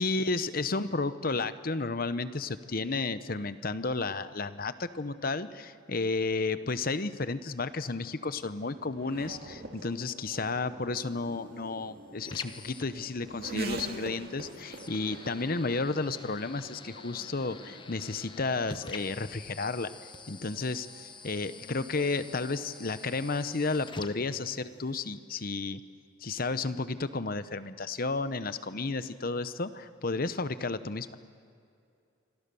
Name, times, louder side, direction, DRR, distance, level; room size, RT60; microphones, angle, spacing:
voice 1, 0.0-19.9 20.3-25.8 26.2-31.1, left 3 dB, 50° left, 13 dB, 0.9 m, -32 dB
Race car auto racing / Accelerating revving vroom, 7.2-23.4, right 2 dB, 50° right, 2.2 m, -46 dB
sound 1, 10.9-24.9, left 4 dB, 25° left, 1.0 m, -48 dB
27.0 x 25.5 x 7.0 m, 2.5 s
head